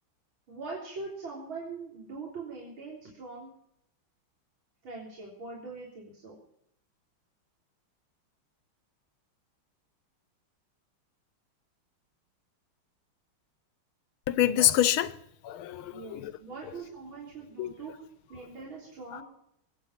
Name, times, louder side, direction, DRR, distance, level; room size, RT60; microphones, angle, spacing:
voice 1, 0.5-3.5 4.8-6.4 15.9-17.9 18.3-19.2, right 4 dB, 70° right, 4.4 m, -42 dB
voice 2, 14.3-15.2 15.4-16.3 17.6-17.7 19.1-19.2, left 12 dB, 85° left, 1.7 m, -26 dB
23.5 x 8.7 x 5.8 m
omnidirectional pair, 2.3 m